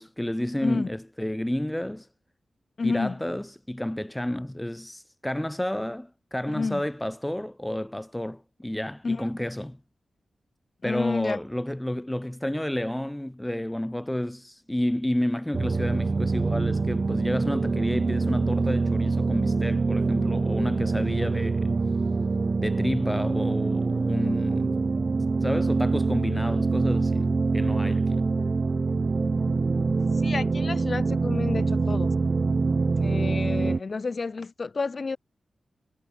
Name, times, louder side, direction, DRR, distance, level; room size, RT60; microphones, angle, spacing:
voice 1, 0.0-2.1 2.8-9.8 10.8-21.7 22.6-24.8 25.4-28.3, left 1 dB, 10° left, 0.5 m, -30 dB
voice 2, 2.8-3.2 6.5-6.8 9.0-9.3 10.8-11.4 30.2-32.1 32.9-35.2, left 4 dB, 45° left, 1.0 m, -30 dB
sound 1, 15.5-33.8, right 4 dB, 45° right, 0.4 m, -25 dB
wide cardioid pair, 85°, 0 cm